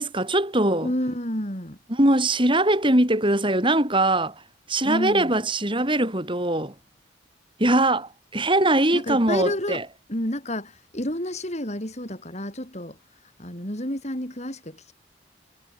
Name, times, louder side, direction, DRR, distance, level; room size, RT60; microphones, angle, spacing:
voice 1, 0.0-0.9 1.9-4.3 4.7-6.7 7.6-9.8, right 1 dB, 25° right, 8.0 m, -21 dB
voice 2, 0.8-1.8 4.8-5.4 8.9-9.8 10.1-13.0 13.4-14.9, left 1 dB, 35° left, 7.9 m, -30 dB
head